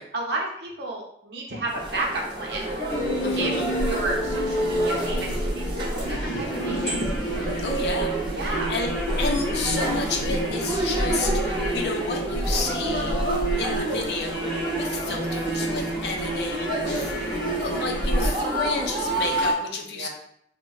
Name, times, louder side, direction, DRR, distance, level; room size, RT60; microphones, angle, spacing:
voice 1, 0.1-2.6 3.4-3.5 3.8-7.0 8.3-8.7 13.4-13.6 16.6-17.0 19.9-20.1, right 2 dB, 70° right, -1 dB, 0.7 m, -32 dB
sound 1, 1.6-19.5, right 1 dB, 25° right, 0.6 m, -30 dB
sound 2, 2.9-18.3, right 1 dB, 15° left, 0.9 m, -28 dB
voice 2, 3.2-3.7 7.6-13.2 13.6-20.1, left 3 dB, 70° left, 2 dB, 0.5 m, -31 dB
3.9 x 2.1 x 2.3 m, 0.72 s
head